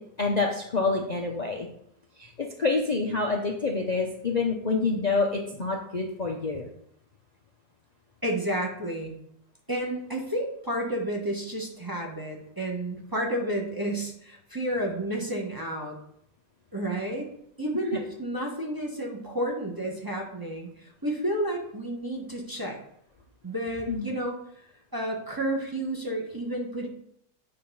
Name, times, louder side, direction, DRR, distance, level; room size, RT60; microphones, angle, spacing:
voice 1, 0.2-1.7 2.2-6.7 17.9-18.0 23.9-24.1, left 4 dB, 60° left, 0 dB, 0.4 m, -27 dB
voice 2, 8.2-9.2 9.7-15.9 16.7-17.3 17.6-22.8 23.4-24.3 24.9-26.9, right 1 dB, 15° right, -2 dB, 0.9 m, -31 dB
8.6 x 3.9 x 5.4 m, 0.72 s
omnidirectional pair, 1.9 m